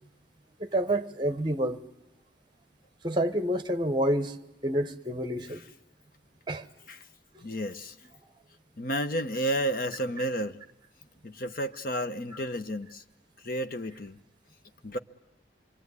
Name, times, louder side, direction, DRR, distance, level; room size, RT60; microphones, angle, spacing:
voice 1, 0.6-1.8 3.0-4.4 4.6-5.6 6.5-6.7, right 1 dB, 25° right, 1.1 m, -28 dB
voice 2, 7.4-7.9 8.8-10.6 11.2-13.0 13.4-14.2 14.8-15.0, right 1 dB, 50° left, 1.0 m, -31 dB
27.0 x 22.5 x 9.7 m
head